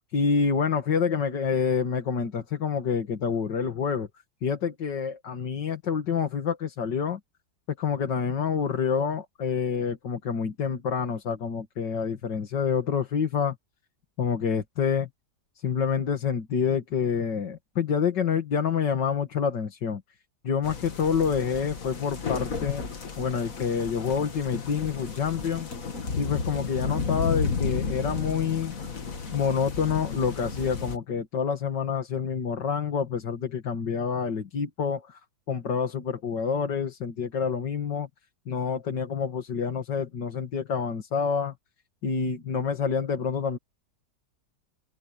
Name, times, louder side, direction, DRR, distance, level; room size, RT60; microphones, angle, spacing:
voice 1, 0.1-4.1 4.4-7.2 7.8-13.6 14.2-15.1 15.6-20.0 20.4-22.8 23.2-25.7 26.2-28.7 29.3-35.2 35.5-38.1 38.5-41.5 42.0-43.6, left 6 dB, 80° left, 2.6 m, -27 dB
sound 1, 20.6-31.0, left 5 dB, 50° left, 2.3 m, -32 dB
open air
omnidirectional pair, 1.9 m